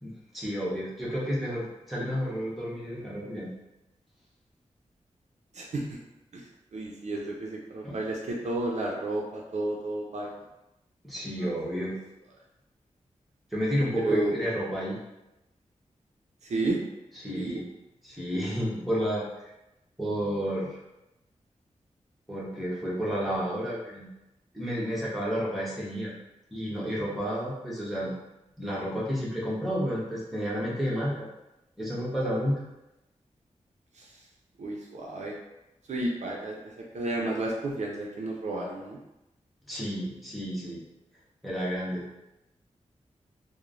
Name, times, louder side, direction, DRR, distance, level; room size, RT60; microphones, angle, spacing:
voice 1, 0.0-3.5 7.8-8.0 11.0-11.9 13.5-15.0 17.2-17.6 18.0-19.5 20.0-20.8 22.3-24.1 24.5-26.1 26.5-28.1 28.6-31.3 31.8-32.6 39.7-40.8 41.4-42.0, equal, ahead, -7 dB, 0.9 m, -31 dB
voice 2, 5.5-6.0 6.3-10.3 11.4-11.5 13.9-14.4 16.4-16.8 17.3-17.6 33.9-34.2 34.6-35.3 35.9-39.0, right 2 dB, 65° right, -1 dB, 0.4 m, -32 dB
3.0 x 2.0 x 2.5 m, 0.95 s
wide cardioid pair, 90°, 13 cm